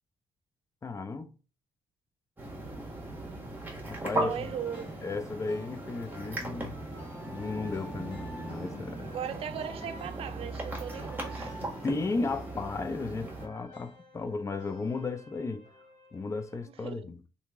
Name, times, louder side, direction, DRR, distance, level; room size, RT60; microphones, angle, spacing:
voice 1, 0.8-1.3 3.8-4.5 5.0-6.8 7.3-9.1 11.8-15.6 16.1-17.2, left 3 dB, 25° left, 0.5 m, -34 dB
sound 1, 2.4-13.5, right 2 dB, 15° right, 1.5 m, -38 dB
voice 2, 4.2-5.1 9.1-11.5 16.8-17.1, right 8 dB, 60° right, 0.5 m, -38 dB
sound 2, 4.3-16.6, left 1 dB, 85° left, 1.6 m, -52 dB
2.8 x 2.8 x 3.5 m
cardioid pair, 75°, 11 cm